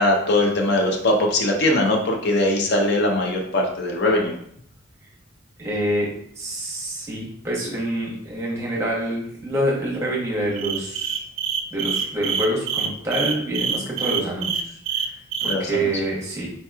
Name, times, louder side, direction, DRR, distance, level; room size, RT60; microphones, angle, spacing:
voice 1, 0.0-4.3 15.5-15.9, left 1 dB, 50° left, 1 dB, 0.6 m, -21 dB
voice 2, 5.6-6.1 6.4-11.2 11.7-15.1 15.6-16.5, right 1 dB, 15° right, -4 dB, 0.9 m, -26 dB
sound 1, 10.6-15.6, right 7 dB, 60° right, 0.3 m, -25 dB
4.3 x 2.9 x 2.3 m, 0.65 s
head